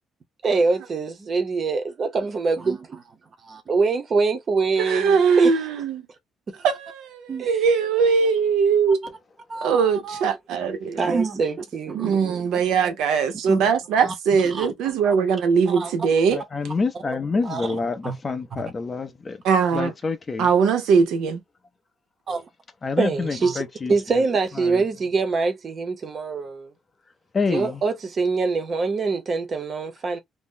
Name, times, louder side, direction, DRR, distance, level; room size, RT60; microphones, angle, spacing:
voice 1, 0.4-3.0 3.5-5.5 6.5-6.6 7.3-7.6 9.5-10.3 11.0-12.5 13.5-13.6 14.0-14.9 15.7-15.9 17.5-17.7 18.0-18.2 22.3-22.5 23.0-23.6 23.9-26.7 27.5-30.2, right 4 dB, 30° right, 0.6 m, -25 dB
voice 2, 4.8-6.0 6.6-9.1 9.6-11.0 11.9-16.4 19.4-19.9 20.4-21.4, right 6 dB, 85° right, 0.8 m, -21 dB
voice 3, 16.3-19.4 19.7-20.5 22.8-24.2 24.5-24.8 27.3-27.8, left 4 dB, 20° left, 0.4 m, -27 dB
2.6 x 2.0 x 3.6 m
cardioid pair, 170°, 0 cm